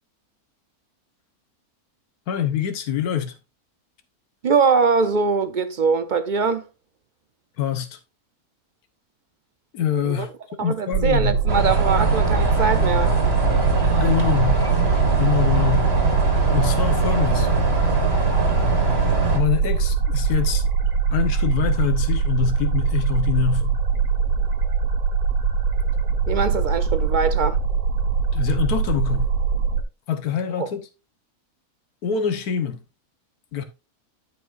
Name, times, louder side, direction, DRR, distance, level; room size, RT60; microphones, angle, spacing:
voice 1, 2.3-3.3 7.6-8.0 9.7-10.3 10.6-11.4 13.9-14.6 15.2-15.9 16.5-17.5 19.3-20.6 21.1-23.7 28.3-29.3 30.1-30.9 32.0-32.8 33.5-33.6, left 9 dB, 85° left, 1.5 m, -24 dB
voice 2, 4.4-6.7 10.1-10.3 10.6-13.1 26.3-27.6 30.6-30.7, right 5 dB, 60° right, 0.5 m, -22 dB
sound 1, 10.9-29.8, right 6 dB, 85° right, 1.7 m, -22 dB
sound 2, 11.5-19.4, right 2 dB, 45° right, 2.1 m, -23 dB
12.5 x 5.6 x 2.5 m
omnidirectional pair, 1.6 m